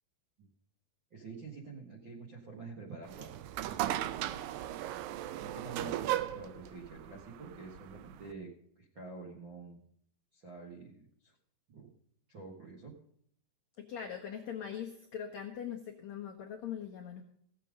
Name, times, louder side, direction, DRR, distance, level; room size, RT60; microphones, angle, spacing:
voice 1, 1.1-3.4 3.7-4.4 5.4-8.5 8.7-9.8 10.3-11.3 11.7-11.9 12.3-12.9, right 4 dB, 50° right, -2 dB, 1.4 m, -47 dB
sound 1, 3.0-8.3, right 13 dB, 80° right, 2.0 m, -37 dB
voice 2, 13.8-17.2, left 8 dB, 75° left, 1 dB, 1.6 m, -41 dB
16.5 x 7.5 x 5.2 m, 0.65 s
omnidirectional pair, 4.6 m